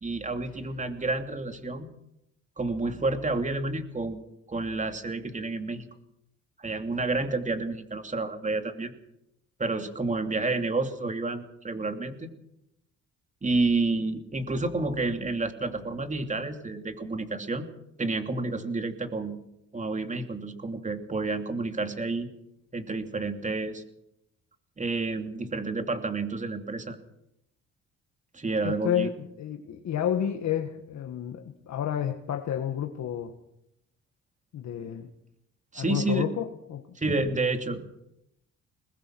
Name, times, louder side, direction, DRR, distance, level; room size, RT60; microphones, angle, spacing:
voice 1, 0.0-1.9 2.6-4.2 4.5-5.9 6.6-8.9 9.6-12.3 13.4-17.7 18.0-19.4 19.7-22.3 22.7-23.8 24.8-27.0 28.3-29.1 35.7-36.2 36.9-38.0, right 3 dB, 25° right, 6 dB, 2.8 m, -30 dB
voice 2, 28.6-33.3 34.5-35.1 35.8-36.8 37.1-37.2, left 9 dB, 65° left, 4 dB, 1.6 m, -30 dB
22.0 x 20.0 x 6.1 m, 0.81 s
cardioid pair, 90°, 30 cm